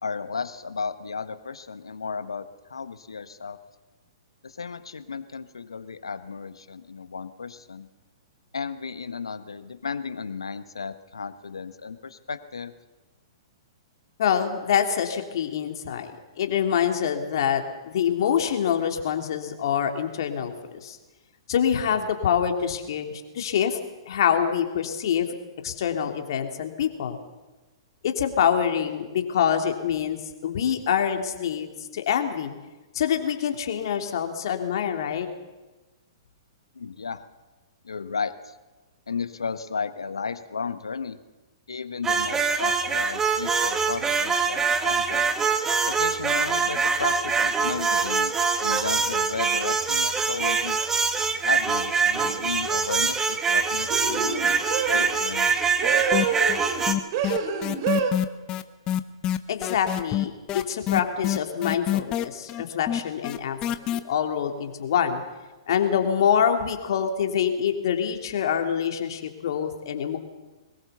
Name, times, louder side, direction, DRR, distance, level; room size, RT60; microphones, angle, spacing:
voice 1, 0.0-3.6 4.4-7.9 8.5-12.7 36.7-37.2 37.8-38.5 39.1-41.2 41.7-45.2 45.9-48.3 48.6-50.8 51.5-54.3 54.9-55.8, left 5 dB, 80° left, 11 dB, 1.4 m, -34 dB
voice 2, 14.2-16.1 16.4-21.0 21.5-23.8 24.1-25.3 25.6-27.2 28.0-32.5 32.9-35.3 59.5-63.6 63.9-65.2 65.7-70.2, left 8 dB, 60° left, 5 dB, 3.2 m, -25 dB
sound 1, 42.0-56.9, right 5 dB, 15° right, 1.8 m, -24 dB
sound 2, 52.1-52.4 53.9-55.1 55.8-56.8 57.1-58.1, right 5 dB, 50° right, 4.5 m, -27 dB
sound 3, 56.1-56.6 56.9-64.0, left 12 dB, 30° left, 1.2 m, -26 dB
22.5 x 20.5 x 7.0 m, 1.2 s
figure-of-eight pair, 115°, 3 cm